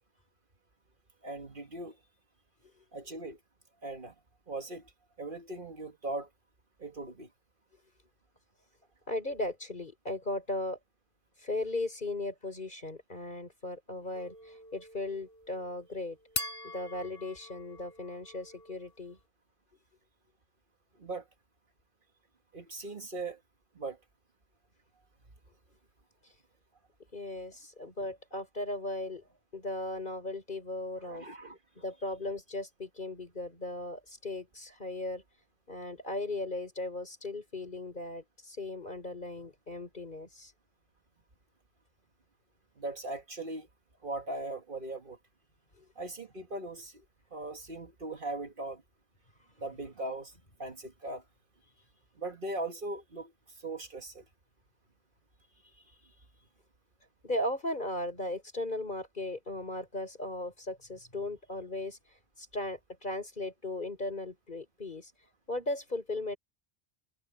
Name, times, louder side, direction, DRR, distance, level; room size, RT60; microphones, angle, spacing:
voice 1, 1.2-2.0 2.9-3.4 3.8-4.1 4.5-4.8 5.2-6.3 6.8-7.3 21.0-21.2 22.5-23.4 23.8-24.0 31.0-31.6 42.8-43.7 44.0-45.2 46.0-46.9 47.3-48.8 49.6-50.3 50.6-51.2 52.2-53.3 53.6-54.2, right 2 dB, 55° right, 1.9 m, -39 dB
voice 2, 9.1-10.8 11.4-16.2 16.6-19.2 27.1-29.2 29.5-31.3 31.8-35.2 35.7-40.5 45.8-45.9 57.2-62.0 62.4-65.1 65.5-66.4, left 2 dB, 50° left, 4.4 m, -37 dB
sound 1, 14.1-19.0, left 2 dB, 65° left, 4.2 m, -43 dB
omnidirectional pair, 1.1 m